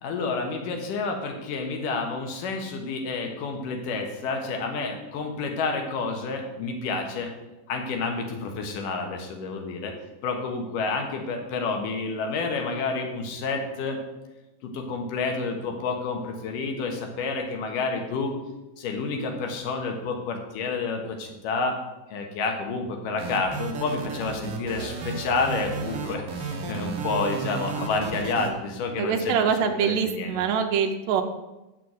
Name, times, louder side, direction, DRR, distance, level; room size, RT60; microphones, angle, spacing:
voice 1, 0.0-7.3 7.7-9.9 10.2-14.0 14.6-18.3 18.8-21.8 22.1-30.4, left 4 dB, 80° left, 3 dB, 2.9 m, -29 dB
sound 1, 23.2-28.5, right 4 dB, 55° right, 1.9 m, -33 dB
voice 2, 29.0-31.2, right 7 dB, 90° right, 4 dB, 2.3 m, -24 dB
6.9 x 6.5 x 7.8 m, 1.0 s
omnidirectional pair, 3.7 m